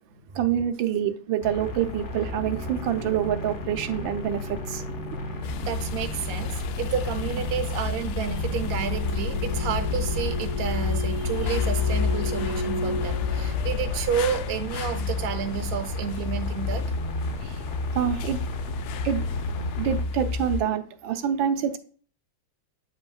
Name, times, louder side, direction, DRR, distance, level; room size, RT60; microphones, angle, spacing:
voice 1, 0.3-4.8 17.4-17.6 17.9-18.4 19.0-19.3 19.7-21.8, right 9 dB, 80° right, 8 dB, 1.5 m, -26 dB
sound 1, 1.4-20.0, left 2 dB, 50° left, 0.9 m, -35 dB
sound 2, 1.5-14.3, left 1 dB, 25° right, 2.1 m, -37 dB
sound 3, 5.4-20.6, left 4 dB, 75° left, 1.3 m, -30 dB
voice 2, 5.6-16.8, right 7 dB, 55° right, 7 dB, 0.7 m, -30 dB
8.2 x 5.2 x 2.3 m, 0.43 s
omnidirectional pair, 2.1 m